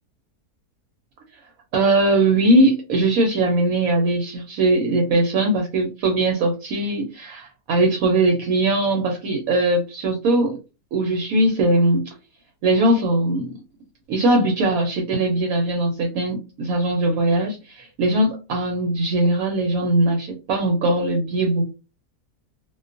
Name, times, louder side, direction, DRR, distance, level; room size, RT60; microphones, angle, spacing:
voice 1, 1.7-10.6 10.9-12.0 12.6-13.5 14.1-21.7, right 1 dB, 70° right, 2 dB, 1.0 m, -20 dB
2.4 x 2.2 x 2.4 m, 0.30 s
omnidirectional pair, 1.6 m